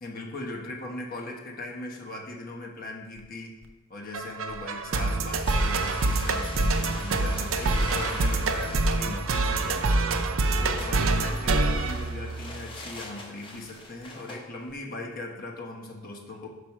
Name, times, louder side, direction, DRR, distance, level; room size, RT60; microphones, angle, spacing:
voice 1, 0.0-3.6 3.9-9.9 10.6-16.5, left 2 dB, 45° left, -1 dB, 1.1 m, -39 dB
sound 1, 4.1-12.7, right 3 dB, 85° right, 0.5 m, -26 dB
sound 2, 5.1-11.0, right 1 dB, 25° right, 0.8 m, -41 dB
sound 3, 5.5-14.4, left 2 dB, 25° left, 0.9 m, -43 dB
5.3 x 4.2 x 5.9 m, 1.3 s
head